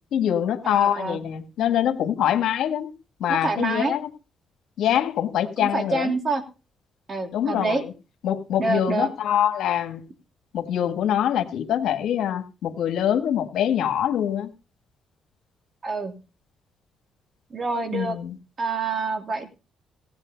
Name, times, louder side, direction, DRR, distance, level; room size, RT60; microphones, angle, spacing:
voice 1, 0.1-2.9 3.2-4.0 4.8-6.1 7.3-7.8 8.2-10.1 10.5-14.5 17.9-18.3, left 10 dB, 80° left, 8 dB, 1.6 m, -24 dB
voice 2, 0.6-1.2 3.3-4.0 5.6-6.4 7.1-7.8 8.6-9.1 15.8-16.1 17.5-18.2 18.6-19.5, right 3 dB, 40° right, 5 dB, 3.0 m, -26 dB
16.0 x 8.7 x 5.2 m, 0.33 s
cardioid pair, 90°, 0 cm